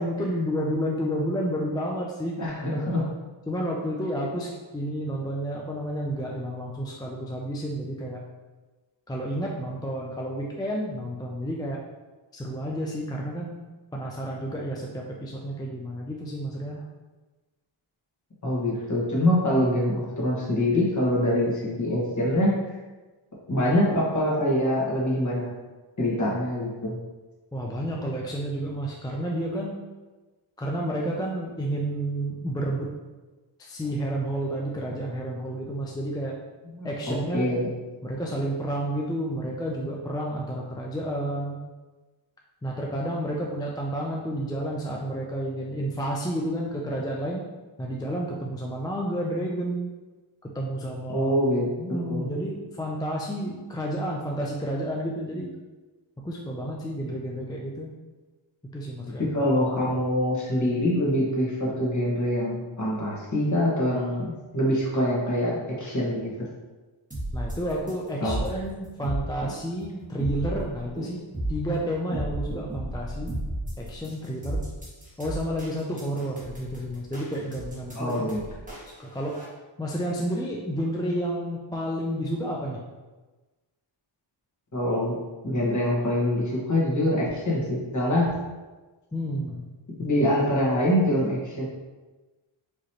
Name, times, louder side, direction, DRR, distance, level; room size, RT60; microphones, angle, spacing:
voice 1, 0.0-2.5 3.5-8.2 9.1-11.8 12.3-13.6 13.9-16.8 27.5-29.7 30.6-32.9 33.6-36.3 36.8-37.5 38.0-41.6 42.6-47.4 47.8-49.9 50.4-51.3 51.8-55.5 56.2-57.9 58.7-59.5 67.3-71.2 71.5-73.3 73.8-74.6 75.2-78.3 79.0-79.4 79.8-82.8 89.1-89.6, right 1 dB, 10° left, -2 dB, 0.4 m, -30 dB
voice 2, 2.4-3.0 18.4-22.5 23.5-25.5 26.0-27.0 36.8-37.7 51.1-51.7 52.1-52.3 59.3-66.3 68.2-68.4 77.9-78.4 84.7-85.2 85.4-88.3 90.0-91.7, left 1 dB, 35° left, -5 dB, 1.4 m, -24 dB
sound 1, 67.1-79.4, right 1 dB, 15° right, 1.3 m, -33 dB
4.9 x 3.0 x 2.9 m, 1.2 s
wide cardioid pair, 90°, 49 cm